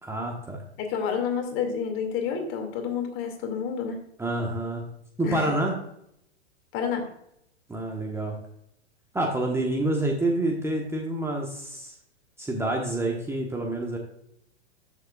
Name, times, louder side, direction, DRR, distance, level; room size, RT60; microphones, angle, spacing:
voice 1, 0.0-0.6 4.2-4.9 5.2-5.8 7.7-8.4 9.1-11.9 12.4-14.0, right 1 dB, 10° right, 0 dB, 1.3 m, -28 dB
voice 2, 0.8-4.0 5.2-5.5 6.7-7.1, left 7 dB, 40° left, 4 dB, 2.4 m, -29 dB
13.0 x 6.9 x 2.4 m, 0.75 s
hypercardioid pair, 105°, 33 cm